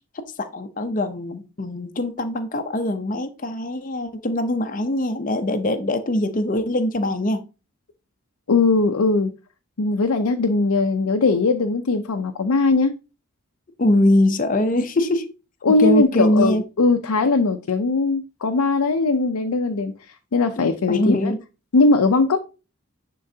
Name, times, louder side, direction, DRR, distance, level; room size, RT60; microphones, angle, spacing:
voice 1, 0.1-7.4 13.8-15.3 15.7-16.6 20.6-21.4, left 1 dB, 35° left, 0.6 m, -22 dB
voice 2, 8.5-9.3 9.8-12.9 15.6-19.9 20.3-21.3 21.7-22.4, left 3 dB, 85° left, 0.6 m, -19 dB
10.0 x 3.8 x 2.7 m
head